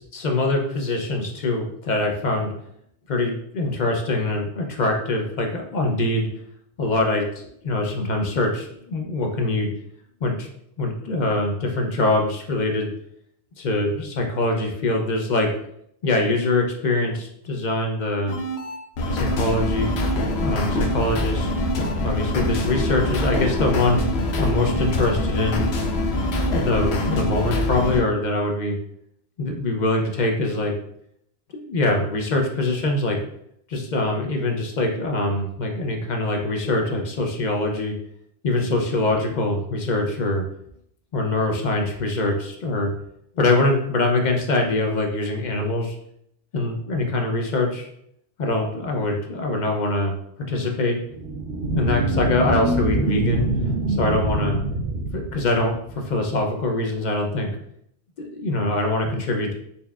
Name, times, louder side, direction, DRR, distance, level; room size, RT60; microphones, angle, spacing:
voice 1, 0.0-2.5 3.1-6.3 6.8-9.7 10.2-10.5 10.8-12.9 13.6-15.5 16.0-18.4 19.1-21.5 22.0-24.0 24.4-25.6 26.5-28.8 29.4-30.7 31.5-33.2 33.7-38.0 38.4-40.4 41.1-42.9 43.4-46.0 46.5-47.9 48.4-51.0 51.7-53.5 53.9-54.6 55.1-57.6 58.2-59.5, left 2 dB, 55° left, 2 dB, 0.6 m, -23 dB
sound 1, 18.3-28.0, left 1 dB, 85° left, 0.9 m, -24 dB
sound 2, 51.1-56.1, right 2 dB, 75° right, 0.8 m, -24 dB
4.2 x 3.3 x 2.3 m, 0.73 s
omnidirectional pair, 1.1 m